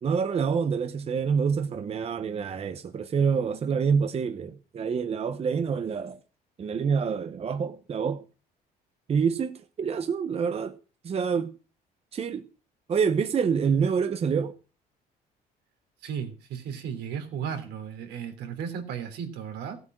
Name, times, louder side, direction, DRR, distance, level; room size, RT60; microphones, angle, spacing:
voice 1, 0.0-6.2 6.6-8.2 9.1-10.7 11.0-11.5 12.1-12.4 12.9-14.5, right 6 dB, 35° right, 1.0 m, -27 dB
voice 2, 16.0-19.8, right 7 dB, 80° right, 3.2 m, -35 dB
15.5 x 8.0 x 6.1 m
cardioid pair, 110°, 17 cm